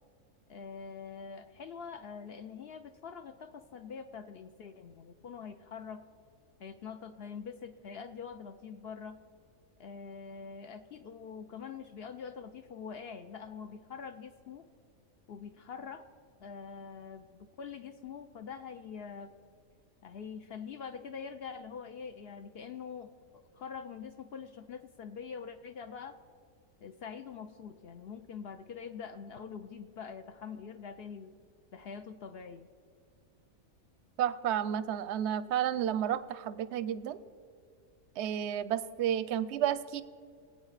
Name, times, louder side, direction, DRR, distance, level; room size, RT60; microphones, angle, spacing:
voice 1, 0.5-6.0 6.6-9.2 9.8-14.7 15.3-16.1 16.4-19.3 20.0-26.2 26.8-31.3 31.7-32.7, left 6 dB, 65° left, 9 dB, 0.6 m, -44 dB
voice 2, 34.2-37.2 38.2-40.0, right 10 dB, 65° right, 15 dB, 0.7 m, -31 dB
21.5 x 8.6 x 4.0 m, 2.2 s
omnidirectional pair, 1.5 m